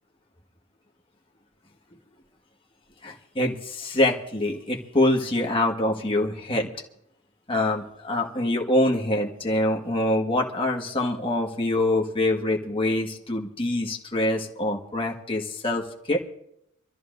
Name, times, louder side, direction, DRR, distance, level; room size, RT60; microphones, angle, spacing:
voice 1, 3.0-6.7 7.5-16.2, left 1 dB, 25° left, 0 dB, 1.6 m, -25 dB
25.0 x 14.0 x 2.6 m, 0.75 s
head